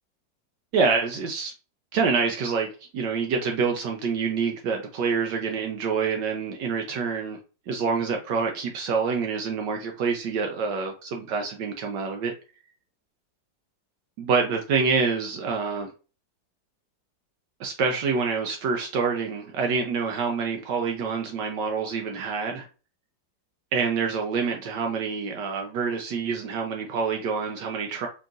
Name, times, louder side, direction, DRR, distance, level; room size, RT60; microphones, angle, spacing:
voice 1, 0.7-1.5 1.9-7.4 7.7-12.3 14.2-15.9 17.6-22.7 23.7-28.1, right 5 dB, 75° right, 1.2 m, -26 dB
4.5 x 2.9 x 2.4 m
omnidirectional pair, 2.0 m